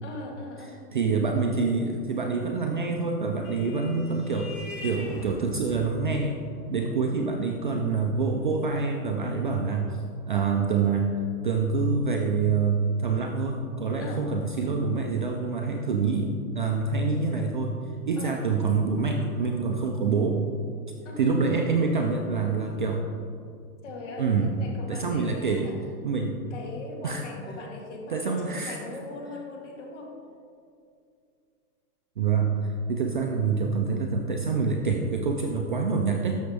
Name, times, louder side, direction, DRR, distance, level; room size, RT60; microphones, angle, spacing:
voice 1, 0.0-0.9 14.0-14.3 18.2-18.4 21.0-21.4 23.8-25.8 26.5-30.2, left 2 dB, 50° left, 1 dB, 1.8 m, -40 dB
voice 2, 0.9-4.5 4.8-6.4 6.7-9.9 10.3-11.1 11.4-17.8 18.1-20.4 21.2-23.0 24.2-24.5 24.9-25.7 26.0-26.4 27.0-27.2 28.1-28.8 32.2-36.4, right 4 dB, 35° right, 2 dB, 0.4 m, -26 dB
Vehicle horn car horn honking, 3.1-11.8, left 2 dB, 20° left, 0.6 m, -44 dB
13.0 x 6.3 x 3.4 m, 2.4 s
hypercardioid pair, 150°, 48 cm